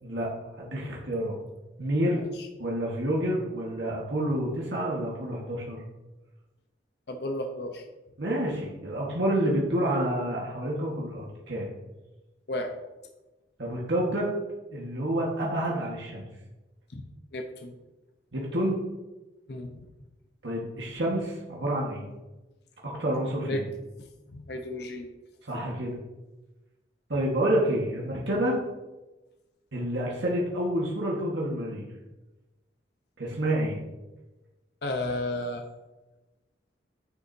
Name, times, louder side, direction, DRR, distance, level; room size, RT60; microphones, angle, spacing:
voice 1, 0.6-1.4 1.8-2.2 2.6-5.8 8.2-11.7 13.6-14.3 14.7-16.2 18.3-18.8 20.4-22.1 22.8-23.6 25.4-26.0 27.1-28.6 29.7-31.9 33.2-33.8, right 1 dB, 75° right, -4 dB, 1.5 m, -28 dB
voice 2, 7.1-7.8 12.5-12.7 16.9-17.0 17.3-17.7 19.5-19.8 23.4-23.6 24.3-25.1 34.8-35.6, left 1 dB, 60° left, 4 dB, 0.7 m, -33 dB
9.6 x 6.8 x 2.7 m, 1.1 s
head